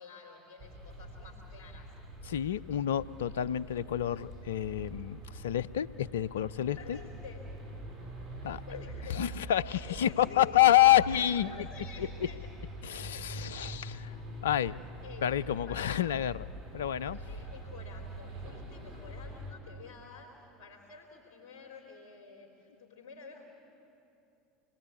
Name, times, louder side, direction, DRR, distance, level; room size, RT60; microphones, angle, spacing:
voice 1, 0.0-1.9 6.8-7.4 8.7-9.2 9.7-12.4 14.6-15.3 15.7-16.2 16.9-23.5, left 5 dB, 60° left, 1 dB, 3.4 m, -50 dB
sound 1, 0.6-19.5, right 1 dB, 50° right, 4.4 m, -44 dB
voice 2, 2.2-7.0 8.4-8.6 9.1-11.7 12.8-14.1 14.4-14.8 15.2-16.3 16.7-17.2, left 12 dB, 75° left, 17 dB, 0.5 m, -28 dB
27.0 x 21.5 x 8.5 m, 2.7 s
hypercardioid pair, 75°, 0 cm